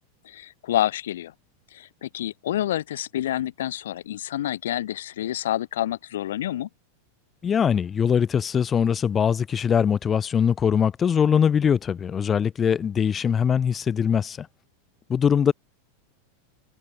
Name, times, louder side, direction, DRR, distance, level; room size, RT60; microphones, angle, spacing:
voice 1, 0.2-1.3 1.7-6.7, left 12 dB, 85° left, 2.1 m, -28 dB
voice 2, 7.4-14.5 15.1-15.5, left 7 dB, 15° left, 1.4 m, -22 dB
supercardioid pair, 160°, 0 cm